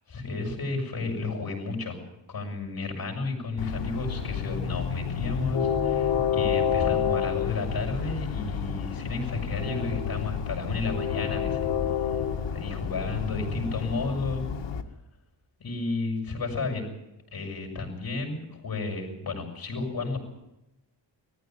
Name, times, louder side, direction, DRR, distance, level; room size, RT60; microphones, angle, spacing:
voice 1, 0.1-2.0 2.3-11.6 12.5-14.4 15.6-16.9 17.3-20.2, left 3 dB, 55° left, 2 dB, 6.8 m, -32 dB
Train, 3.6-14.8, left 7 dB, 80° left, 1.9 m, -29 dB
19.5 x 15.0 x 9.3 m, 0.90 s
wide cardioid pair, 150°, 43 cm